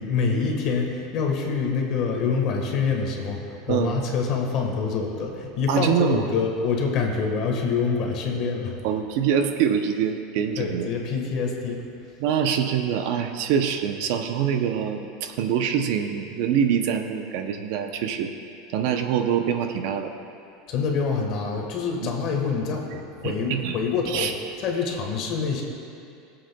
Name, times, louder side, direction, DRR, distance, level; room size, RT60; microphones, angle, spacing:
voice 1, 0.0-8.8 10.6-11.8 20.7-24.3 24.6-25.6, left 5 dB, 40° left, 1 dB, 1.3 m, -26 dB
voice 2, 5.7-6.2 8.8-10.9 12.2-18.3 18.7-20.1 22.0-22.1 23.2-23.8 24.1-24.3, right 8 dB, 55° right, 6 dB, 0.6 m, -24 dB
22.0 x 7.8 x 2.2 m, 2.5 s
supercardioid pair, 170°, 0 cm